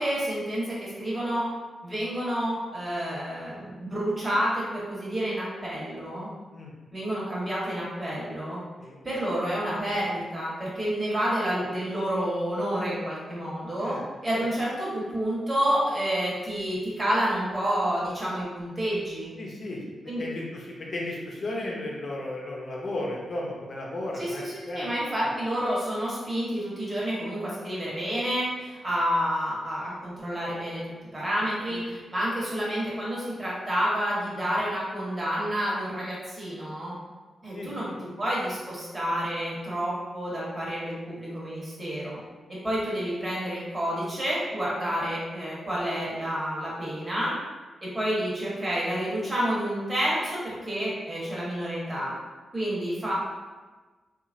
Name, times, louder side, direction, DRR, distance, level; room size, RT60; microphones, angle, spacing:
voice 1, 0.0-1.4 1.8-6.3 6.9-8.6 9.0-14.0 14.2-19.3 20.1-20.3 24.1-36.9 37.4-37.9 38.2-42.2 42.6-47.3 47.8-52.1 52.5-53.1, equal, 25° right, -7 dB, 1.2 m, -29 dB
voice 2, 19.4-24.9 25.2-25.3 31.7-31.8 37.5-37.9, left 1 dB, 55° left, -2 dB, 0.7 m, -35 dB
2.9 x 2.4 x 2.5 m, 1.3 s
cardioid pair, 70°, 0 cm